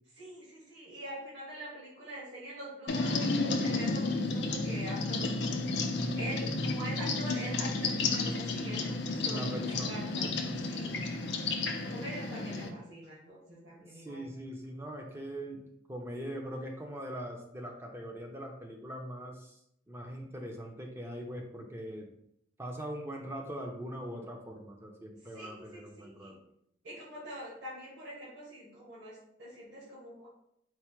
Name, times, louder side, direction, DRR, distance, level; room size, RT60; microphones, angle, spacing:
voice 1, 0.2-5.6 6.1-10.3 10.7-11.2 11.9-14.3 25.3-26.3 26.8-30.3, right 1 dB, 65° right, -7 dB, 1.5 m, -44 dB
sound 1, 2.9-12.7, left 3 dB, 60° left, 0.5 m, -32 dB
voice 2, 9.2-10.6 13.9-15.6 15.9-19.6 19.9-22.1 22.6-26.3, equal, 15° right, 1 dB, 0.5 m, -41 dB
4.5 x 2.1 x 4.5 m, 0.74 s
head